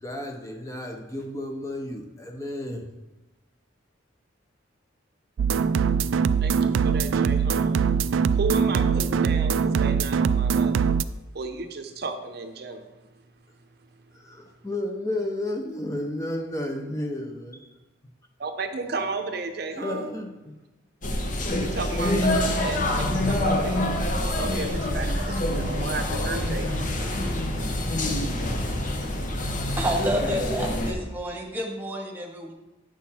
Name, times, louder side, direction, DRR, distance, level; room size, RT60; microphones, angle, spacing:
voice 1, 0.0-2.8 14.1-17.8 19.7-20.5, left 1 dB, 15° left, 3 dB, 0.6 m, -32 dB
sound 1, 5.4-11.0, right 6 dB, 90° right, 0.4 m, -22 dB
voice 2, 6.4-7.8 8.3-10.8 11.3-12.8 18.4-20.1 21.6-23.8 24.3-27.1, right 3 dB, 55° right, 6 dB, 0.7 m, -33 dB
sound 2, 21.0-30.9, left 1 dB, 40° left, 0.9 m, -26 dB
voice 3, 29.8-32.5, equal, 10° right, 0 dB, 1.2 m, -29 dB
9.5 x 6.2 x 4.2 m, 1.0 s
head